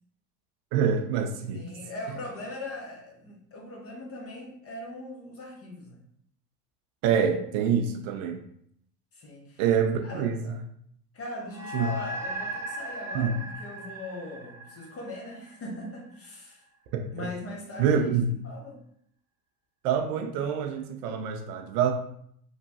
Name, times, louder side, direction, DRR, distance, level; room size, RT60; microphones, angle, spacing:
voice 1, 0.7-1.6 7.0-8.4 9.6-10.5 11.7-11.9 13.1-13.4 16.9-17.3 17.8-18.3 19.8-21.9, right 7 dB, 60° right, 4 dB, 0.6 m, -26 dB
voice 2, 1.5-6.0 9.1-9.6 10.0-10.6 11.1-16.6 17.1-18.2 18.4-18.8, left 1 dB, 30° left, 1 dB, 0.8 m, -40 dB
sound 1, 11.5-16.2, right 1 dB, 5° right, 0.3 m, -38 dB
3.0 x 2.2 x 2.7 m, 0.68 s
hypercardioid pair, 80°, 48 cm